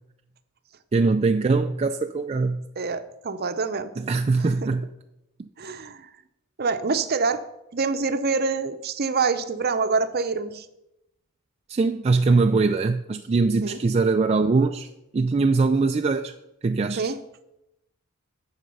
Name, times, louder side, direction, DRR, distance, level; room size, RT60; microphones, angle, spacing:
voice 1, 0.9-2.7 4.0-4.9 11.7-14.9 15.1-16.3 16.6-17.1, right 3 dB, 30° right, 5 dB, 0.3 m, -22 dB
voice 2, 2.8-3.9 4.4-4.7 5.6-6.1 6.6-7.4 7.7-10.7 13.6-13.8 16.9-17.2, right 4 dB, 45° right, 10 dB, 0.7 m, -26 dB
11.0 x 7.4 x 5.4 m, 0.90 s
head